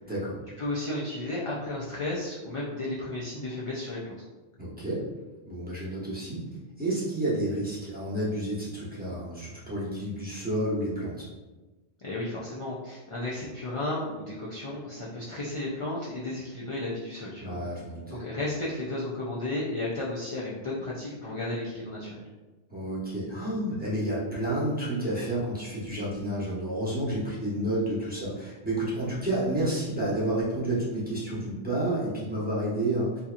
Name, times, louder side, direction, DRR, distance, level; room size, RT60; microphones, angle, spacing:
voice 1, 0.0-0.4 4.6-5.0 5.5-6.5 6.8-11.3 17.4-18.2 22.7-33.2, right 1 dB, 10° right, -8 dB, 0.9 m, -30 dB
voice 2, 0.6-4.2 12.0-17.6 18.1-22.2, left 2 dB, 45° left, -6 dB, 0.4 m, -33 dB
4.0 x 2.8 x 2.4 m, 1.2 s
omnidirectional pair, 1.2 m